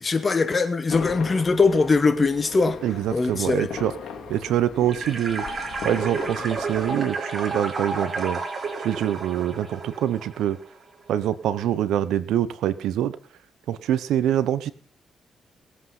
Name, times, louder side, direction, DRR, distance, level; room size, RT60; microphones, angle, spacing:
voice 1, 0.0-2.8 3.1-3.7, left 4 dB, 35° left, 2.1 m, -21 dB
sound 1, 0.9-7.0, left 6 dB, 70° left, 3.1 m, -38 dB
voice 2, 2.8-3.9 4.3-5.4 5.8-8.4 8.8-10.6 11.1-13.2 13.7-14.7, right 11 dB, 90° right, 1.1 m, -25 dB
sound 2, 4.9-10.6, right 3 dB, 45° right, 4.1 m, -31 dB
19.5 x 8.4 x 5.7 m
cardioid pair, 75°, 0 cm